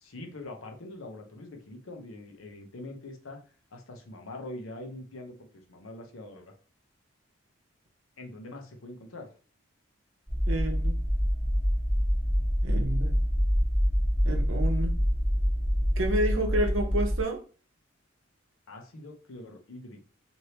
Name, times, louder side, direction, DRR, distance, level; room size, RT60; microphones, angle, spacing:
voice 1, 0.0-3.4 3.7-6.5 8.2-9.3 18.7-20.0, left 2 dB, 80° left, 3 dB, 0.7 m, -43 dB
sound 1, 10.3-17.2, equal, 5° left, 0.7 m, -26 dB
voice 2, 10.5-11.0 12.6-13.2 14.2-14.9 16.0-17.4, right 1 dB, 70° right, 4 dB, 0.7 m, -29 dB
3.2 x 2.6 x 2.8 m, 0.39 s
head